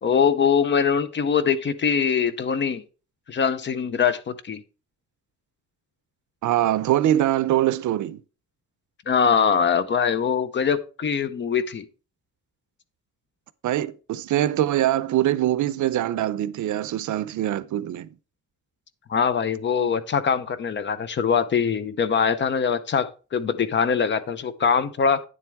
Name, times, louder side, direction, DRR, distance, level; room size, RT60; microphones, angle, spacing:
voice 1, 0.0-2.8 3.3-4.6 9.1-11.9 19.1-25.2, left 6 dB, 40° left, 0.6 m, -22 dB
voice 2, 6.4-8.2 13.6-18.1, right 13 dB, 80° right, 0.6 m, -23 dB
9.8 x 7.6 x 3.5 m
wide cardioid pair, 180°, 30 cm